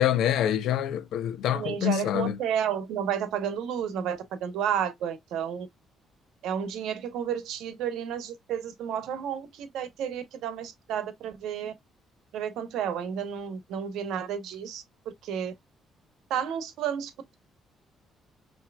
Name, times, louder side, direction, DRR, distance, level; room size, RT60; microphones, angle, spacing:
voice 1, 0.0-2.4, left 10 dB, 75° left, 0.6 m, -26 dB
voice 2, 1.5-5.7 6.4-11.7 12.3-14.8 15.2-15.5 16.3-17.3, right 8 dB, 85° right, 0.9 m, -31 dB
5.8 x 2.8 x 2.3 m
cardioid pair, 110°, 0 cm